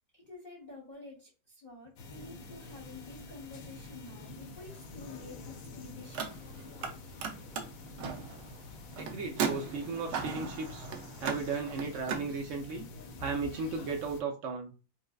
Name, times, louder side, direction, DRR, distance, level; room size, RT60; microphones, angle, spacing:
voice 1, 0.1-6.3, left 3 dB, 40° left, -3 dB, 0.7 m, -49 dB
sound 1, 2.0-14.2, left 3 dB, 70° left, 0.8 m, -47 dB
Car, 6.0-6.9 7.2-12.3, right 6 dB, 70° right, 1.1 m, -37 dB
voice 2, 9.0-10.9 11.2-12.8 13.2-14.7, right 4 dB, 90° right, 3 dB, 0.6 m, -35 dB
4.7 x 2.1 x 2.3 m, 0.32 s
omnidirectional pair, 2.0 m